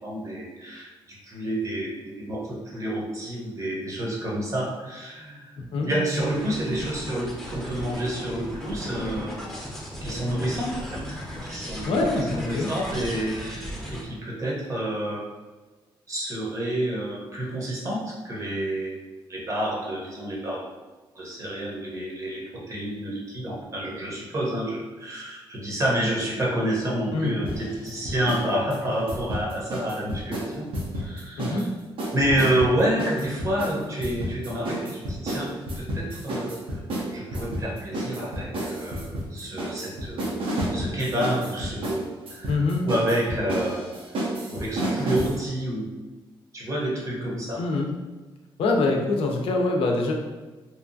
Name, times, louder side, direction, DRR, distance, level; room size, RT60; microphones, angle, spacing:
voice 1, 0.0-5.5 5.8-9.3 10.0-11.2 11.4-15.3 16.1-19.0 19.3-20.6 21.1-30.7 30.9-31.7 32.1-36.6 37.1-40.4 40.7-42.0 42.3-43.9 44.5-45.9 46.5-47.6, right 1 dB, 35° right, -4 dB, 0.8 m, -29 dB
voice 2, 5.6-5.9 11.9-12.7 27.1-27.3 31.4-31.7 42.5-42.9 47.6-47.9 48.6-50.1, left 3 dB, 85° left, 1 dB, 0.4 m, -24 dB
sound 1, 6.2-14.1, equal, 5° left, 0.6 m, -36 dB
sound 2, 27.5-28.5 28.7-31.7 32.0-45.4, right 1 dB, 70° right, 0.6 m, -31 dB
2.7 x 2.2 x 2.6 m, 1.2 s
cardioid pair, 110°, 9 cm